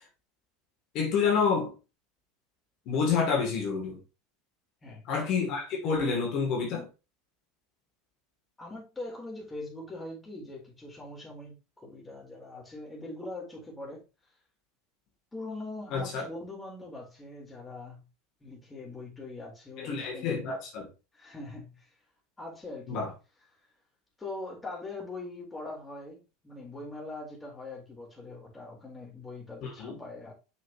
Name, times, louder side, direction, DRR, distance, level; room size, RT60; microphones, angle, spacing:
voice 1, 0.9-1.7 2.9-4.0 5.1-6.9 15.9-16.3 19.8-20.9 22.9-23.1 29.6-30.0, left 5 dB, 50° left, 2.7 m, -28 dB
voice 2, 8.6-14.0 15.3-18.1 18.4-20.6 21.1-21.9 22.4-23.1 24.2-30.3, left 2 dB, 15° left, 4.1 m, -42 dB
6.8 x 6.4 x 3.0 m
hypercardioid pair, 80°, 0 cm